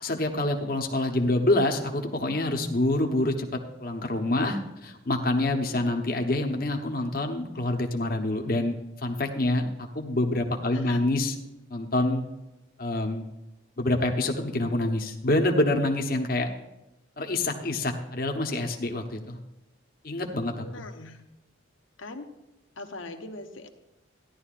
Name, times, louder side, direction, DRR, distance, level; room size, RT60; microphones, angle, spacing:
voice 1, 0.0-11.3 11.7-12.2 12.8-13.2 13.8-16.5 17.2-19.4 20.0-20.9, left 2 dB, 45° left, 3 dB, 0.9 m, -26 dB
voice 2, 10.7-11.0 20.6-21.2 22.0-22.3 22.8-23.7, left 2 dB, 75° left, 5 dB, 1.0 m, -41 dB
14.5 x 11.0 x 2.5 m, 0.96 s
head